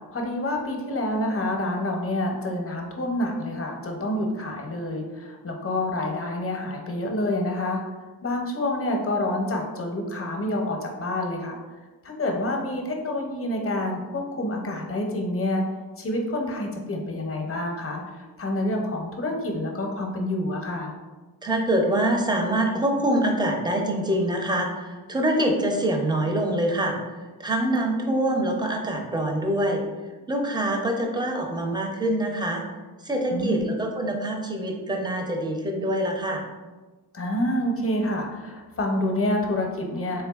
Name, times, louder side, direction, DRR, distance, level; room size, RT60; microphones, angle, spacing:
voice 1, 0.1-7.8 8.2-11.6 12.0-15.6 16.0-18.0 18.4-20.9 33.3-33.6 37.1-40.2, left 1 dB, 35° left, 1 dB, 0.6 m, -27 dB
voice 2, 21.4-27.0 27.4-29.8 30.3-32.6 33.0-36.4, right 1 dB, 10° right, 2 dB, 0.4 m, -25 dB
3.4 x 3.3 x 2.3 m, 1.3 s
wide cardioid pair, 100°, 40 cm